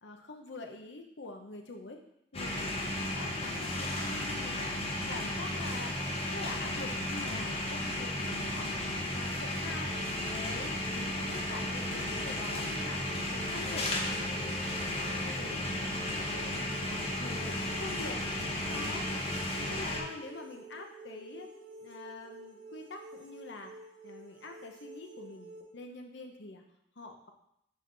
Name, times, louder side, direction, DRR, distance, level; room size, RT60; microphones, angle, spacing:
voice 1, 0.0-2.0 2.3-6.0 6.3-8.7 9.1-9.9 10.3-14.5 14.9-21.5 21.8-23.7 24.0-26.6 27.0-27.3, left 2 dB, 65° left, 4 dB, 0.9 m, -45 dB
sound 1, 2.3-20.0, left 1 dB, 30° left, 1.0 m, -34 dB
sound 2, 9.7-25.6, right 1 dB, 65° right, 0.8 m, -50 dB
sound 3, 13.6-24.0 24.5-24.6, equal, 15° right, 1.9 m, -55 dB
6.6 x 4.7 x 4.0 m, 0.78 s
head